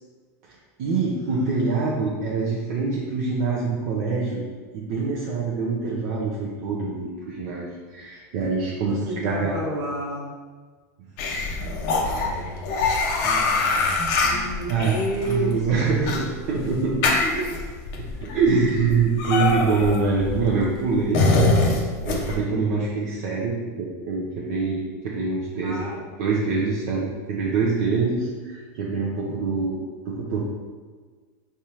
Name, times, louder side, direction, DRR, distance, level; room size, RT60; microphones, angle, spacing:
voice 1, 0.4-4.4 4.7-9.7 11.6-12.5 13.2-13.7 14.2-14.4 14.7-14.9 15.2-17.1 18.2-21.3 22.0-25.8 26.2-30.4, right 4 dB, 55° right, -4 dB, 0.7 m, -25 dB
voice 2, 8.9-10.3 11.1-11.5 14.0-16.3 17.3-17.6 25.6-26.0, right 1 dB, 35° right, -4 dB, 1.5 m, -31 dB
sound 1, 11.2-22.4, left 3 dB, 50° left, 0.8 m, -24 dB
4.9 x 3.5 x 2.9 m, 1.5 s
supercardioid pair, 145°, 10 cm